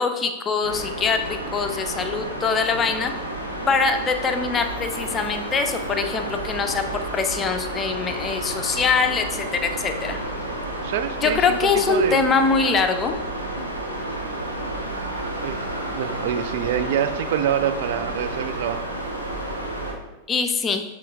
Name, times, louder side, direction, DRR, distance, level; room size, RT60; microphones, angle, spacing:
voice 1, 0.0-3.1 3.7-10.2 11.2-13.2 20.3-20.8, left 5 dB, 20° left, 6 dB, 0.6 m, -23 dB
sound 1, 0.6-19.9, right 1 dB, 85° right, 1.0 m, -31 dB
voice 2, 10.8-12.2 15.4-18.8, right 10 dB, 55° right, 11 dB, 0.4 m, -26 dB
8.5 x 3.1 x 3.5 m, 1.1 s
figure-of-eight pair, 90°, 0 cm